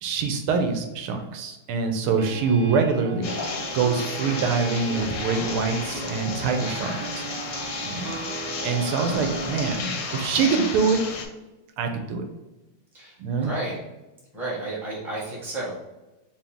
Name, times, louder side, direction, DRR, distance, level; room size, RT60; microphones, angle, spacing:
voice 1, 0.0-3.3 3.7-7.2 7.8-8.1 8.6-11.0 11.8-12.3 13.2-13.5, right 5 dB, 90° right, 5 dB, 1.6 m, -25 dB
sound 1, 2.1-9.8, right 4 dB, 70° right, 1.2 m, -36 dB
sound 2, 3.2-11.3, left 4 dB, 65° left, 1.1 m, -33 dB
voice 2, 12.9-13.8 14.3-15.7, right 2 dB, ahead, -6 dB, 0.9 m, -33 dB
5.0 x 2.7 x 3.5 m, 1.1 s
omnidirectional pair, 2.4 m